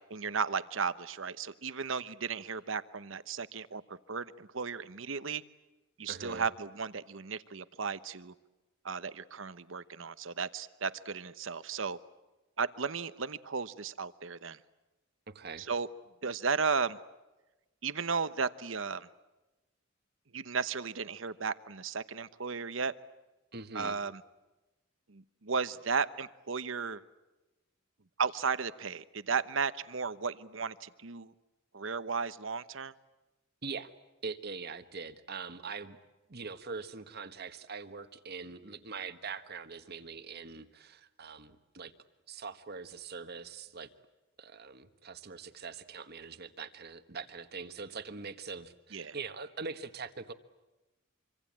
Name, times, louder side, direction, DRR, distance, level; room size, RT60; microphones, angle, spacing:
voice 1, 0.1-5.4 6.0-8.3 8.8-12.0 12.6-14.6 15.6-15.9 16.2-17.0 17.8-19.1 20.3-22.9 23.7-24.2 25.1-27.0 28.2-31.3 31.7-32.9 48.9-49.1, right 5 dB, 70° right, 14 dB, 1.0 m, -35 dB
voice 2, 6.1-6.4 15.3-15.7 23.5-24.0 33.6-33.9 34.2-36.0 36.3-41.9 42.3-43.9 44.4-50.3, right 4 dB, 50° right, 10 dB, 1.4 m, -43 dB
25.5 x 25.0 x 8.7 m, 1.1 s
head